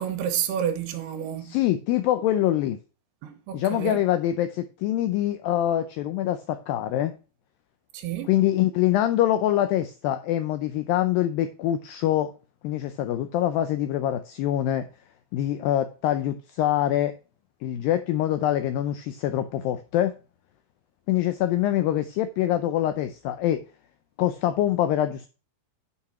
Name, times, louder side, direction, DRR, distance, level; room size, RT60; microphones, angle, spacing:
voice 1, 0.0-1.6 3.2-4.0 7.9-8.3, right 9 dB, 80° right, 3.0 m, -30 dB
voice 2, 1.5-2.8 3.5-7.1 8.3-12.3 12.6-14.9 15.3-17.1 17.6-20.1 21.1-23.6 24.2-25.3, left 12 dB, 85° left, 2.0 m, -24 dB
8.4 x 4.9 x 5.7 m
omnidirectional pair, 4.7 m